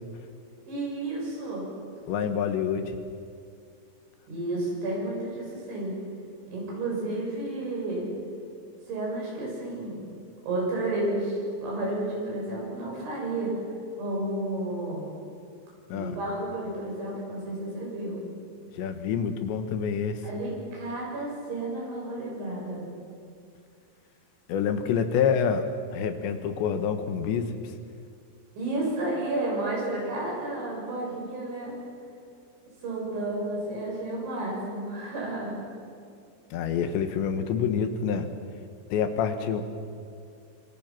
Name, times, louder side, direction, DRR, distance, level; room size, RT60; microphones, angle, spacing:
voice 1, 0.7-1.6 4.3-5.9 6.5-8.1 8.9-10.0 10.4-13.6 14.0-15.1 15.9-18.2 20.2-22.8 28.6-31.7 32.8-35.6, right 2 dB, 90° right, -3 dB, 9.7 m, -31 dB
voice 2, 2.1-3.0 15.9-16.2 18.8-20.2 24.5-25.7 25.9-27.6 36.5-38.3 38.9-39.6, left 7 dB, 75° left, 8 dB, 3.6 m, -27 dB
25.5 x 25.5 x 6.0 m, 2.4 s
omnidirectional pair, 5.2 m